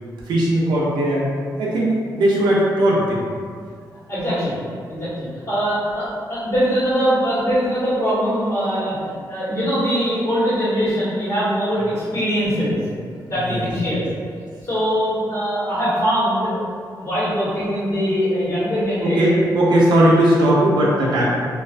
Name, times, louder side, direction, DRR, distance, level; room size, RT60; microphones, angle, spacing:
voice 1, 0.3-1.3 1.6-3.2 13.4-13.7 19.0-21.2, right 1 dB, 80° right, -5 dB, 0.5 m, -18 dB
voice 2, 4.1-4.5 4.9-12.8 13.3-14.0 14.6-16.6 17.0-19.4 21.2-21.3, equal, 35° left, -12 dB, 1.2 m, -22 dB
2.3 x 2.3 x 2.4 m, 2.1 s
wide cardioid pair, 155°, 8 cm